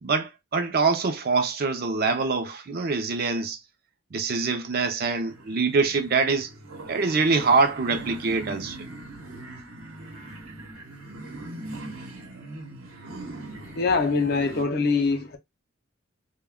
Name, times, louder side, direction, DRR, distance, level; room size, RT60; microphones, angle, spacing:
voice 1, 0.0-3.6 4.1-6.5 6.9-8.8, right 4 dB, 45° right, 0.5 m, -24 dB
sound 1, 5.0-14.6, right 2 dB, 85° right, 0.9 m, -41 dB
voice 2, 13.8-15.4, left 4 dB, 45° left, 0.4 m, -23 dB
2.2 x 2.2 x 3.4 m
head